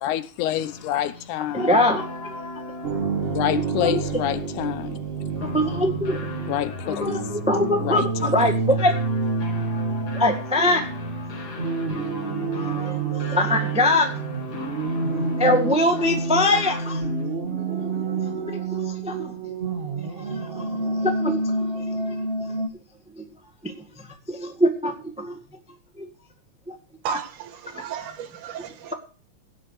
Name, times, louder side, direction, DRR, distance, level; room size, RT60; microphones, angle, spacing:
voice 1, 0.0-1.7 3.3-5.0 6.5-7.2 7.8-8.5, left 12 dB, 85° left, 2.2 m, -27 dB
sound 1, 0.5-17.3, left 2 dB, 35° left, 2.1 m, -36 dB
voice 2, 1.5-2.3 3.8-4.0 5.5-6.2 6.9-9.0 10.1-10.8 12.8-14.1 15.4-17.0 18.5-18.6 19.0-19.3 20.2-22.2 23.2-23.3 23.6-23.7 24.3-25.3 26.0-26.1 26.7-26.8, left 1 dB, 5° right, 0.8 m, -23 dB
sound 2, 2.8-22.7, right 3 dB, 65° right, 0.5 m, -28 dB
voice 3, 27.0-28.9, right 9 dB, 85° right, 2.9 m, -34 dB
17.0 x 5.7 x 6.5 m
omnidirectional pair, 3.4 m